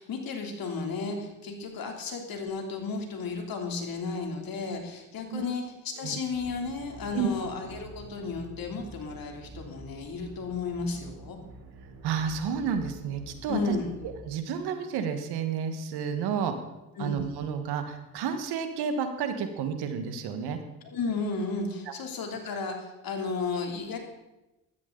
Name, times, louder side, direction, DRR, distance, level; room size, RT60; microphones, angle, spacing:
voice 1, 0.0-11.4 13.5-14.0 17.0-17.2 20.8-24.0, left 4 dB, 65° left, 2 dB, 3.2 m, -33 dB
sound 1, 6.3-14.1, right 2 dB, 65° right, 4.4 m, -48 dB
voice 2, 12.0-13.7 14.2-16.5 17.0-20.6 21.9-22.0, right 7 dB, 85° right, 7 dB, 1.6 m, -31 dB
15.5 x 13.0 x 4.0 m, 1.0 s
supercardioid pair, 70°, 38 cm